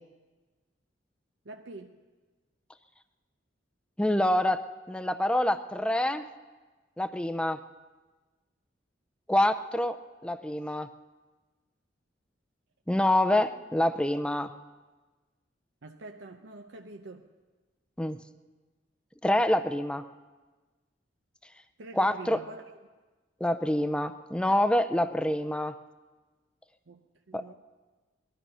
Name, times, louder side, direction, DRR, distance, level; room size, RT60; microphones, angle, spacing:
voice 1, 1.4-2.0 15.8-17.3 21.8-22.6 26.9-27.5, right 2 dB, 85° right, 4 dB, 0.7 m, -45 dB
voice 2, 4.0-6.3 7.0-7.6 9.3-10.0 10.2-10.9 12.9-14.5 18.0-18.2 19.2-20.0 22.0-22.4 23.4-25.7 27.3-27.5, left 1 dB, 5° left, 11 dB, 0.5 m, -26 dB
19.5 x 13.0 x 5.5 m, 1.3 s
head